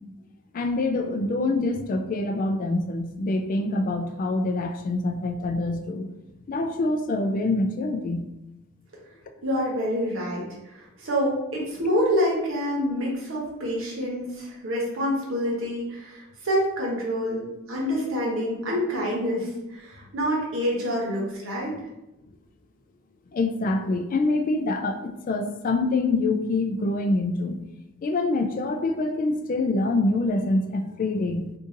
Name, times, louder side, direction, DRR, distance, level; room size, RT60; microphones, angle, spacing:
voice 1, 0.5-6.1 6.5-8.3 23.3-27.6 28.0-31.5, left 2 dB, 40° left, 6 dB, 0.3 m, -25 dB
voice 2, 9.4-21.7, equal, 65° right, -3 dB, 1.0 m, -27 dB
2.7 x 2.5 x 3.8 m, 0.95 s
head